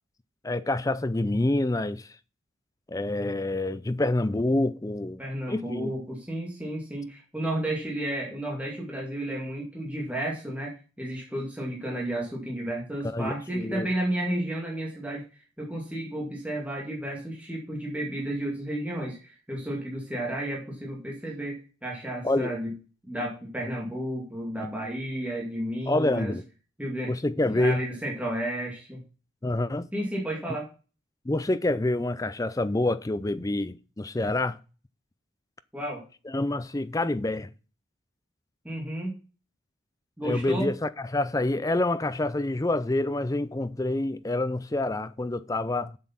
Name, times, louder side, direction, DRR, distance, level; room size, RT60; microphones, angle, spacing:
voice 1, 0.4-2.1 2.9-5.2 5.5-5.9 13.1-13.9 22.2-22.5 25.9-26.4 27.1-27.8 29.4-29.9 31.3-34.6 36.3-37.5 40.2-46.0, left 2 dB, 15° left, 0.4 m, -27 dB
voice 2, 5.2-15.2 15.6-22.7 23.1-26.4 26.8-27.1 27.5-29.0 29.9-30.7 35.7-36.0 38.6-39.2 40.2-40.7, right 1 dB, 5° right, 2.2 m, -32 dB
7.5 x 7.4 x 5.9 m
head